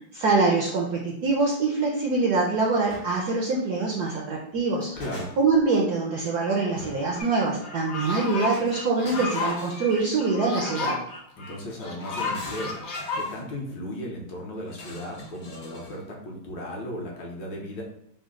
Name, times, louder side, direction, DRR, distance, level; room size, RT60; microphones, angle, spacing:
voice 1, 0.1-5.0 5.4-10.9, right 3 dB, 75° right, -1 dB, 0.9 m, -24 dB
sound 1, 2.9-3.1 4.5-5.6 6.8-7.2 8.5-10.4 11.7-13.5 14.7-16.0, left 1 dB, 50° left, 0.8 m, -42 dB
voice 2, 5.0-5.3 11.4-12.9 13.1-17.8, equal, 70° left, -1 dB, 1.4 m, -36 dB
sound 2, 7.2-7.3 7.6-13.2, left 4 dB, 90° left, 0.6 m, -32 dB
4.0 x 2.0 x 3.6 m, 0.75 s
omnidirectional pair, 2.2 m